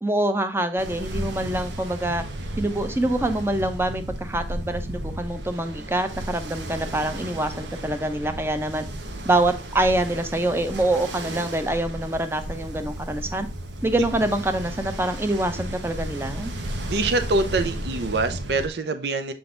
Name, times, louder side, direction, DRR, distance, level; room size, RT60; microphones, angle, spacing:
voice 1, 0.0-2.2 2.6-8.9 9.2-13.5 13.8-16.5, right 1 dB, 15° right, 0.6 m, -25 dB
Ocean, 0.8-18.7, right 1 dB, 85° right, 1.0 m, -34 dB
voice 2, 16.9-19.3, right 3 dB, 70° right, 0.6 m, -24 dB
6.9 x 3.9 x 3.7 m
head